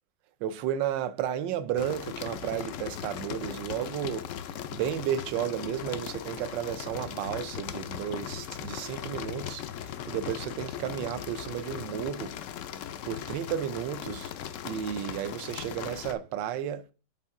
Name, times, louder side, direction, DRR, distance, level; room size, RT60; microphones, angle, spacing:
voice 1, 0.4-4.3 4.7-12.3 13.0-14.3 14.6-16.9, right 10 dB, 85° right, 1.3 m, -33 dB
sound 1, 1.8-16.1, left 9 dB, 85° left, 0.6 m, -38 dB
8.5 x 4.4 x 3.6 m
omnidirectional pair, 1.9 m